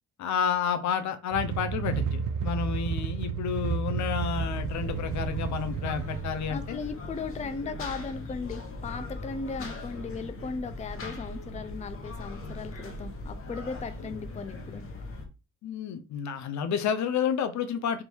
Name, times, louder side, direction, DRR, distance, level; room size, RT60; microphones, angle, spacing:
voice 1, 0.2-6.8 15.6-18.0, left 7 dB, 65° left, 9 dB, 0.7 m, -30 dB
sound 1, 1.3-6.3, right 6 dB, 80° right, 0.6 m, -31 dB
sound 2, 4.3-15.3, left 2 dB, 45° left, 1.1 m, -39 dB
voice 2, 6.5-14.9, left 4 dB, 25° left, 9 dB, 0.5 m, -37 dB
3.7 x 2.6 x 4.5 m, 0.31 s
cardioid pair, 90°, 30 cm